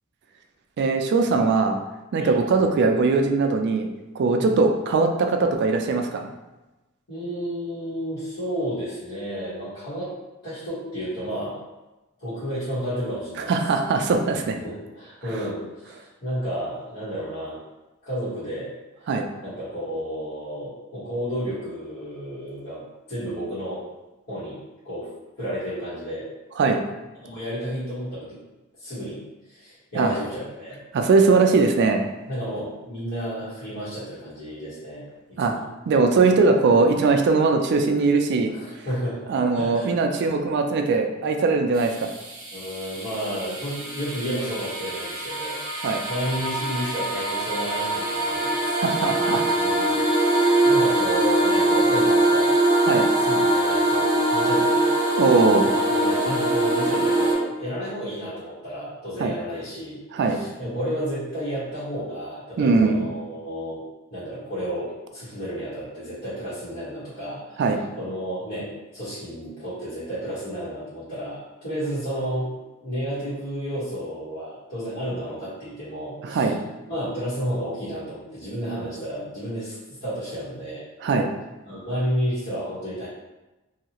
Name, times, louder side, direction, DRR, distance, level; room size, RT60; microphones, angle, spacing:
voice 1, 0.8-1.8 2.1-3.9 4.2-6.3 13.4-14.5 19.1-19.3 26.6-26.8 29.9-30.1 30.9-32.1 35.4-35.5 35.9-38.5 39.3-42.1 45.8-46.0 48.7-49.5 52.9-53.1 55.2-55.7 59.2-59.3 60.1-60.4 62.6-63.1 67.6-67.8 76.2-76.6 81.0-81.3, right 4 dB, 55° right, 5 dB, 0.3 m, -20 dB
voice 2, 7.1-10.1 10.4-11.6 12.2-13.5 14.6-17.6 18.0-18.7 19.4-22.8 23.1-23.8 24.3-25.1 25.4-26.3 27.2-28.4 28.8-29.2 29.5-30.8 32.3-35.6 38.5-39.9 42.5-48.8 49.6-52.6 53.2-54.9 55.9-60.0 60.3-63.8 64.1-67.6 67.9-72.5 72.8-76.5 76.9-80.8 81.6-83.1, equal, 50° left, -15 dB, 1.2 m, -32 dB
sound 1, 41.8-57.3, right 1 dB, 20° right, 0.7 m, -23 dB
2.7 x 2.3 x 2.8 m, 1.1 s
head